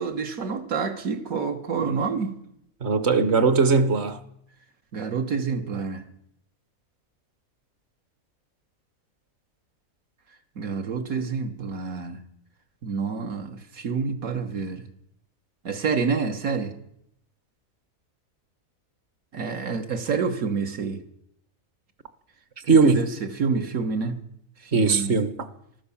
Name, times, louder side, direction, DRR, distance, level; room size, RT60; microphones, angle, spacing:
voice 1, 0.0-2.4 4.9-6.0 10.6-12.2 12.8-14.8 15.6-16.7 19.3-21.0 22.6-24.2 24.6-25.1, right 5 dB, 75° right, 1.6 m, -28 dB
voice 2, 2.8-4.2 22.7-23.0 24.7-25.3, right 4 dB, 50° right, 1.2 m, -19 dB
14.5 x 12.5 x 7.0 m
omnidirectional pair, 1.5 m